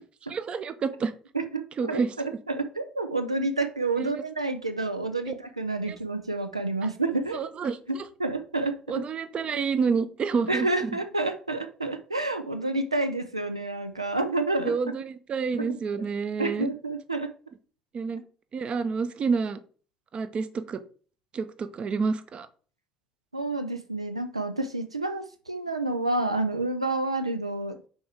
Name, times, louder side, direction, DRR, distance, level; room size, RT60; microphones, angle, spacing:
voice 1, 0.3-1.1 1.8-2.1 4.0-4.2 5.3-5.4 5.9-6.0 7.3-8.0 8.9-11.0 14.6-16.7 17.9-18.2 18.5-19.6 20.1-20.8 21.3-22.5, right 5 dB, 35° right, 11 dB, 0.7 m, -29 dB
voice 2, 1.3-7.5 7.9-9.1 10.5-14.7 15.6-15.7 15.9-16.0 16.4-17.3 23.3-27.8, right 2 dB, 85° right, 8 dB, 0.4 m, -29 dB
6.3 x 4.4 x 3.5 m, 0.40 s
figure-of-eight pair, 55°, 3 cm